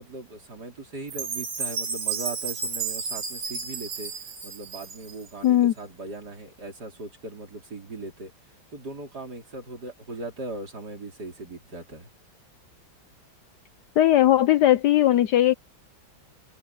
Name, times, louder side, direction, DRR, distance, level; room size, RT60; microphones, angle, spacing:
voice 1, 0.0-8.3 8.7-12.1, right 2 dB, 55° right, 4.7 m, -39 dB
Chime, 1.1-5.3, right 6 dB, 80° right, 3.2 m, -32 dB
voice 2, 5.4-5.7 14.0-15.5, left 13 dB, 70° left, 1.1 m, -18 dB
omnidirectional pair, 2.1 m